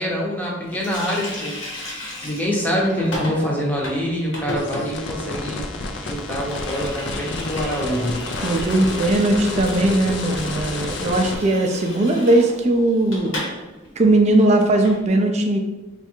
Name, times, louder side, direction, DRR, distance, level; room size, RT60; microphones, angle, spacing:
voice 1, 0.0-1.6 2.2-8.2, equal, 10° left, -4 dB, 0.7 m, -25 dB
Water tap faucet, 0.7-13.6 13.8-14.0 14.3-15.0, left 1 dB, 80° left, 1.0 m, -34 dB
sound 1, 4.6-11.3, left 2 dB, 60° left, 0.4 m, -30 dB
voice 2, 8.4-13.4 14.0-15.6, right 1 dB, 35° right, 4 dB, 0.4 m, -19 dB
3.3 x 2.4 x 4.3 m, 1.1 s
head